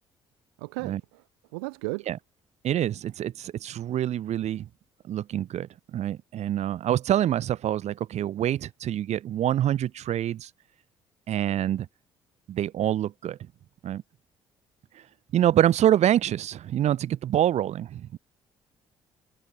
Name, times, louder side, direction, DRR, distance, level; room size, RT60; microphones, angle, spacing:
voice 1, 0.6-1.2 1.5-2.1, right 30 dB, 80° right, 1.6 m, -34 dB
voice 2, 2.6-4.7 5.1-10.5 11.3-11.9 12.5-13.4 13.8-14.0 15.3-18.2, right 11 dB, 60° right, 5.5 m, -26 dB
hypercardioid pair, 55°, 13 cm